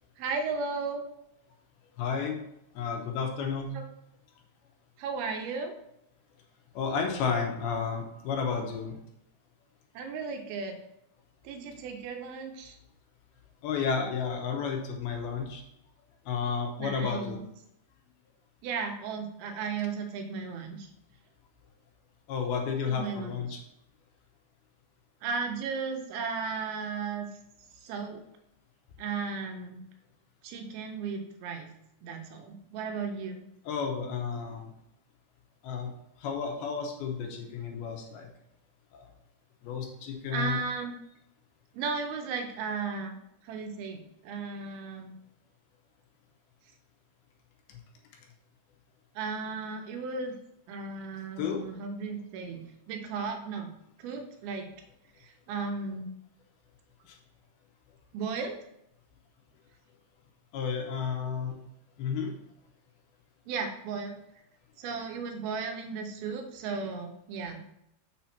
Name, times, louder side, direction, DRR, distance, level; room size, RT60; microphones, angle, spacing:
voice 1, 0.2-1.0 3.7-3.8 5.0-5.7 9.9-10.8 11.4-12.8 16.8-17.4 18.6-20.9 22.8-23.3 25.2-27.3 27.7-28.2 29.0-29.8 30.4-31.7 32.0-33.4 40.3-40.9 41.7-43.2 43.4-45.1 49.2-50.3 50.7-53.7 54.0-54.7 55.2-56.1 58.1-58.6 63.5-64.2 64.8-67.6, right 5 dB, 85° right, 4 dB, 2.8 m, -35 dB
voice 2, 2.0-2.4 2.7-3.7 6.7-9.0 13.6-15.6 16.3-17.4 22.3-23.6 33.7-34.7 35.6-35.9 36.2-38.3 38.9-39.0 39.6-40.6 47.7-47.8 51.4-51.6 57.0-57.2 60.5-61.6 62.0-62.3, left 6 dB, 80° left, 2 dB, 2.9 m, -32 dB
6.7 x 4.2 x 5.9 m, 0.79 s
omnidirectional pair, 4.4 m